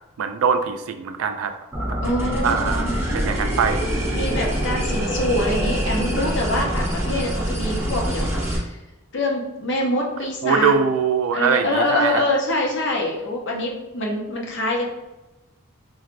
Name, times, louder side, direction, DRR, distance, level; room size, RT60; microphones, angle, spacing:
voice 1, 0.2-1.5 1.9-2.0 2.4-3.9 10.4-12.2, right 6 dB, 80° right, 8 dB, 0.4 m, -22 dB
sound 1, 1.7-8.6, equal, 10° right, 0.8 m, -24 dB
voice 2, 2.0-2.9 4.1-8.8 9.1-10.7 11.3-14.9, left 1 dB, 55° left, -1 dB, 0.8 m, -25 dB
3.9 x 3.2 x 2.5 m, 1.0 s
head